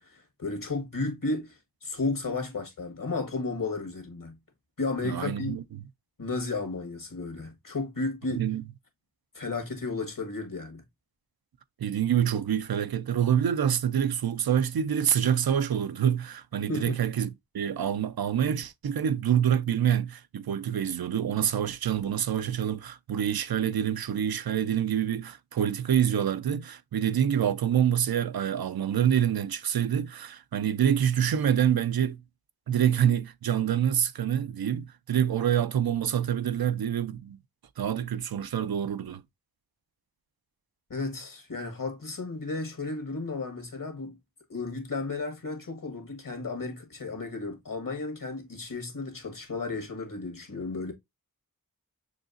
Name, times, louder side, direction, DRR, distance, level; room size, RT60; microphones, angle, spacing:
voice 1, 0.0-4.3 4.8-5.6 6.2-8.4 9.3-10.8 16.7-17.0 40.9-44.2 44.5-50.9, left 3 dB, 65° left, 1.6 m, -33 dB
voice 2, 5.0-5.8 8.3-8.6 11.8-32.2 32.7-37.4 37.8-39.2, right 9 dB, 85° right, 0.5 m, -26 dB
6.4 x 2.8 x 2.5 m
wide cardioid pair, 45°, 36 cm